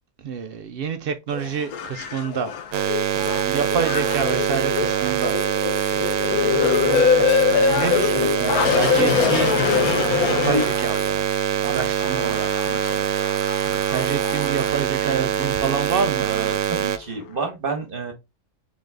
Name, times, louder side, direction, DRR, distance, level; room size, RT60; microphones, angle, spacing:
voice 1, 0.2-2.8 3.1-5.4 5.9-7.1 7.7-11.2 11.5-13.0 13.7-16.3, right 6 dB, 65° right, 0.6 m, -28 dB
sound 1, 1.3-11.2 11.8-14.8 15.5-15.6, left 7 dB, 85° left, 1.2 m, -24 dB
sound 2, 2.7-17.0, right 10 dB, 90° right, 1.1 m, -24 dB
voice 2, 16.2-18.1, right 4 dB, 40° right, 1.3 m, -30 dB
3.9 x 3.8 x 3.4 m
omnidirectional pair, 1.5 m